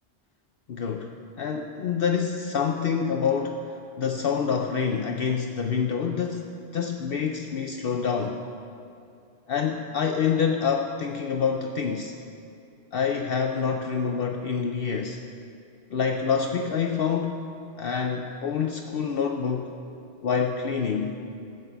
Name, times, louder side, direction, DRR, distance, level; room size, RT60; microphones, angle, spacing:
voice 1, 0.7-1.1 1.4-3.6 4.0-8.4 9.5-12.1 12.9-15.2 15.9-17.4 17.8-19.7 20.2-21.2, left 6 dB, 60° left, 4 dB, 0.8 m, -26 dB
14.5 x 7.9 x 6.7 m, 2.6 s
omnidirectional pair, 1.1 m